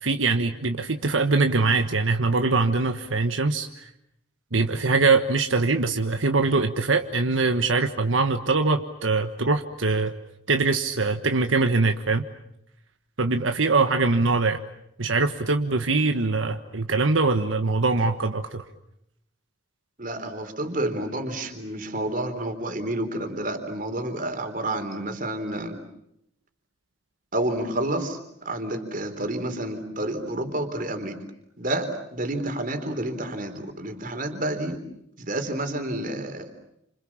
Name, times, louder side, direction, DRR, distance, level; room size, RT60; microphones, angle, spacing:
voice 1, 0.0-3.9 4.5-10.1 10.5-12.2 13.2-14.6 15.0-18.6, right 3 dB, 85° right, 6 dB, 1.4 m, -23 dB
voice 2, 20.0-25.8 27.3-31.2 31.6-34.8 35.2-36.5, right 1 dB, 45° right, 7 dB, 3.8 m, -29 dB
29.5 x 27.0 x 7.4 m, 0.77 s
head